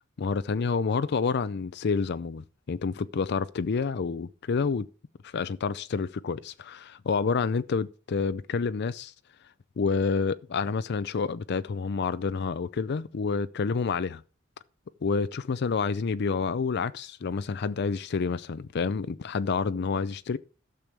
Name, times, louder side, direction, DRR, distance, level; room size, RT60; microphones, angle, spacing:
voice 1, 0.2-4.9 5.2-9.1 9.8-14.2 15.0-20.4, left 5 dB, 55° left, 0.5 m, -28 dB
12.5 x 6.9 x 4.6 m
head